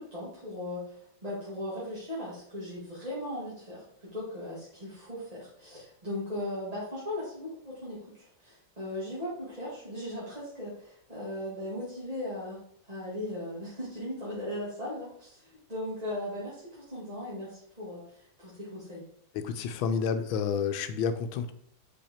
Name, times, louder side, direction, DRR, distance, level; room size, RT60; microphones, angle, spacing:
voice 1, 0.0-12.6 12.9-19.0, left 1 dB, 20° right, -9 dB, 2.2 m, -38 dB
voice 2, 19.3-21.5, left 6 dB, 90° left, 9 dB, 1.5 m, -30 dB
5.5 x 5.1 x 4.3 m, 0.66 s
omnidirectional pair, 2.2 m